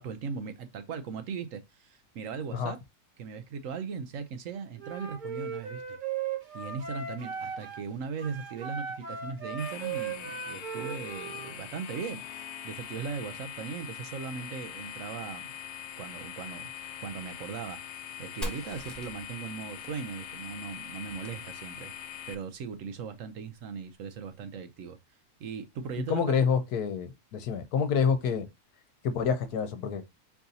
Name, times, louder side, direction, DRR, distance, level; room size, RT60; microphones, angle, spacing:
voice 1, 0.0-2.8 3.2-6.0 6.5-15.5 16.0-21.9 22.3-25.0 25.4-26.4, right 6 dB, 70° right, 0.9 m, -38 dB
Wind instrument woodwind instrument, 4.8-7.9 8.2-11.6, right 6 dB, 40° right, 0.8 m, -37 dB
sound 1, 9.6-22.3, left 10 dB, 65° left, 0.7 m, -43 dB
Fire, 18.4-22.1, equal, ahead, 1.0 m, -43 dB
voice 2, 26.1-28.4 29.0-30.0, left 6 dB, 85° left, 1.3 m, -27 dB
4.6 x 2.7 x 3.9 m
omnidirectional pair, 1.6 m